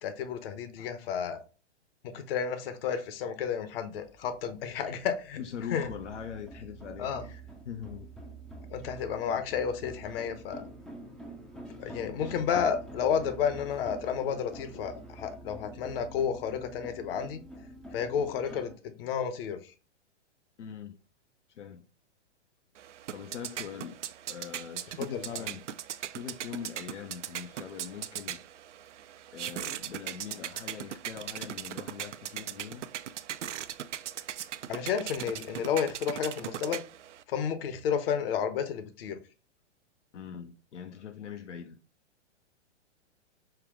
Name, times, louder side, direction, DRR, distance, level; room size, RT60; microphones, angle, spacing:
voice 1, 0.0-1.4 2.0-5.4 5.7-5.9 7.0-7.2 8.7-10.7 11.5-17.4 17.9-19.7 25.0-25.5 34.7-36.8 37.3-39.2, left 7 dB, 55° left, 0.9 m, -31 dB
sound 1, 4.0-18.7, right 1 dB, ahead, 0.4 m, -46 dB
voice 2, 5.4-8.1 20.6-20.9 21.5-21.8 23.1-24.0 24.3-25.6 26.0-28.4 29.3-32.9 40.1-41.8, left 8 dB, 80° left, 0.7 m, -42 dB
sound 2, 22.8-37.2, right 10 dB, 85° right, 0.5 m, -39 dB
5.7 x 2.3 x 3.5 m
hypercardioid pair, 125°, 35 cm